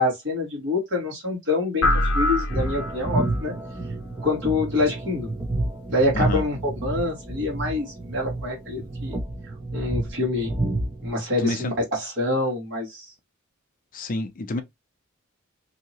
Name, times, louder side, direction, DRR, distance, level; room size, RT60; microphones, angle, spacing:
voice 1, 0.0-1.9 2.1-3.5 4.2-5.3 5.9-9.2 9.7-10.6 11.0-11.7 12.0-13.0, left 2 dB, 60° right, 1.6 m, -26 dB
sound 1, 1.8-3.4, left 1 dB, 85° left, 0.6 m, -24 dB
sound 2, 2.5-11.1, right 2 dB, 20° right, 0.5 m, -30 dB
voice 2, 11.4-11.7 13.9-14.6, left 2 dB, 40° left, 0.5 m, -28 dB
2.8 x 2.7 x 2.8 m
head